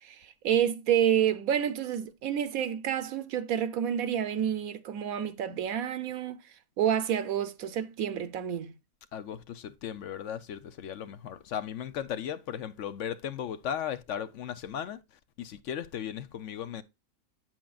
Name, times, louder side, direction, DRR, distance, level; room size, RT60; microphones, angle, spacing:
voice 1, 0.0-6.4 6.8-8.7, right 9 dB, 85° right, 1.3 m, -29 dB
voice 2, 9.1-15.0 15.4-16.8, left 9 dB, 65° left, 0.9 m, -36 dB
8.7 x 7.7 x 2.3 m
omnidirectional pair, 1.5 m